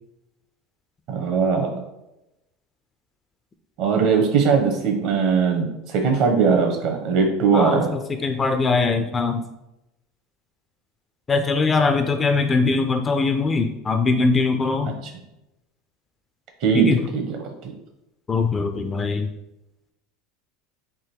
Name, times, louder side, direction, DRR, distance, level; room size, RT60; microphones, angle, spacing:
voice 1, 1.1-1.8 3.8-7.9 16.6-17.2 17.6-17.7, right 5 dB, 55° right, 3 dB, 1.0 m, -20 dB
voice 2, 7.5-9.4 11.3-15.0 16.7-17.0 18.3-19.3, left 4 dB, 20° left, 6 dB, 0.3 m, -21 dB
3.7 x 2.9 x 4.4 m, 0.90 s
supercardioid pair, 145°, 0 cm